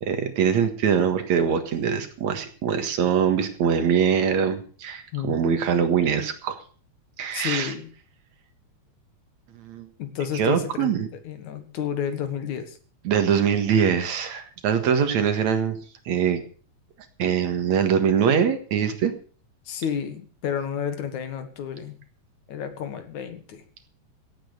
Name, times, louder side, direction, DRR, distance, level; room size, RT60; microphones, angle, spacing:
voice 1, 0.0-6.6 7.2-7.7 9.6-9.9 10.3-11.1 13.0-15.8 16.1-16.4 17.2-19.1, right 7 dB, 70° right, 8 dB, 2.9 m, -23 dB
voice 2, 7.3-7.9 10.0-11.0 11.2-12.8 19.7-22.0 22.5-23.6, left 8 dB, 80° left, 9 dB, 3.1 m, -31 dB
16.0 x 8.7 x 6.7 m, 0.42 s
omnidirectional pair, 3.3 m